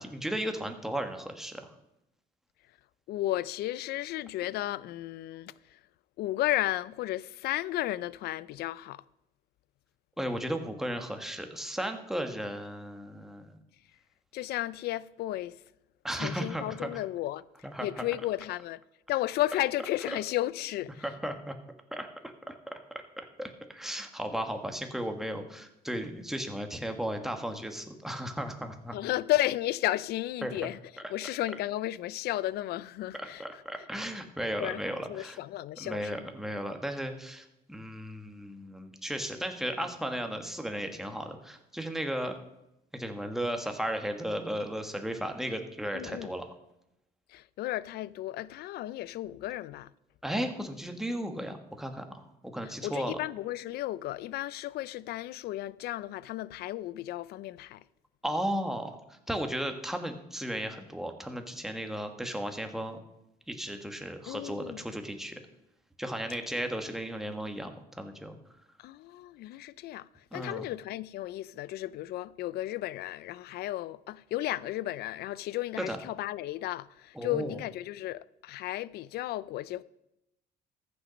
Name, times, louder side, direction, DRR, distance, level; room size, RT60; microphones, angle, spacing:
voice 1, 0.0-1.7 10.2-13.6 16.0-17.0 17.6-17.9 21.0-21.5 21.9-22.1 22.5-22.8 23.2-28.9 30.4-30.5 33.2-35.4 35.8-42.3 42.9-46.4 50.2-52.2 52.5-53.2 58.2-63.0 63.5-65.4 66.0-68.4 70.3-70.6 75.8-76.0 77.1-77.6, equal, ahead, 1.5 m, -35 dB
voice 2, 3.1-5.8 6.2-9.0 14.3-15.6 16.1-17.4 17.8-18.8 19.1-21.0 28.9-30.8 31.1-33.6 34.6-34.8 35.1-36.2 45.9-46.3 47.3-49.9 52.6-57.8 64.3-64.8 68.8-79.8, left 15 dB, 70° left, 0.5 m, -33 dB
14.0 x 6.9 x 5.2 m
cardioid pair, 110°, 17 cm